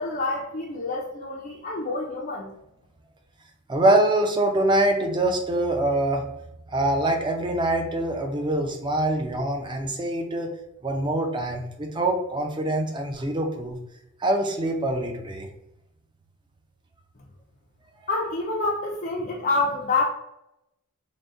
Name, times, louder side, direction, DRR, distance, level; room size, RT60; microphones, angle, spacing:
voice 1, 0.0-2.5 18.1-20.0, left 3 dB, 40° left, -3 dB, 0.5 m, -27 dB
voice 2, 3.7-6.3 6.7-10.5 10.8-13.8 14.2-15.5, right 1 dB, 20° right, 3 dB, 0.5 m, -24 dB
3.9 x 2.2 x 3.6 m, 0.85 s
head